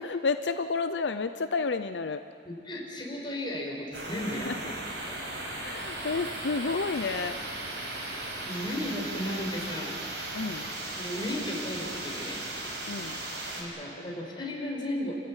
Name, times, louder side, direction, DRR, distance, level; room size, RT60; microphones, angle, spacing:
voice 1, 0.0-2.2 4.4-4.6 5.5-7.4 10.3-10.7 12.9-13.2, left 4 dB, 85° left, 10 dB, 0.6 m, -30 dB
voice 2, 2.4-4.5 5.1-5.2 8.4-10.0 10.9-12.4 13.5-15.2, left 1 dB, 30° left, -1 dB, 5.0 m, -35 dB
sound 1, 3.9-13.6, right 2 dB, 85° right, 6.1 m, -37 dB
28.0 x 14.5 x 9.9 m, 2.7 s
head